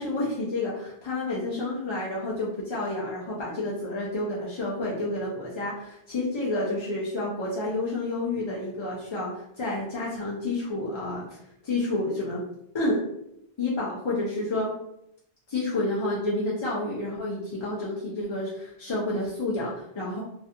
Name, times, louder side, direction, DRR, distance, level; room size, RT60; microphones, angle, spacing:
voice 1, 0.0-11.4 11.6-12.4 12.7-13.0 13.6-14.7 15.5-20.2, left 2 dB, 50° left, -5 dB, 0.3 m, -29 dB
2.3 x 2.2 x 2.6 m, 0.76 s
omnidirectional pair, 1.0 m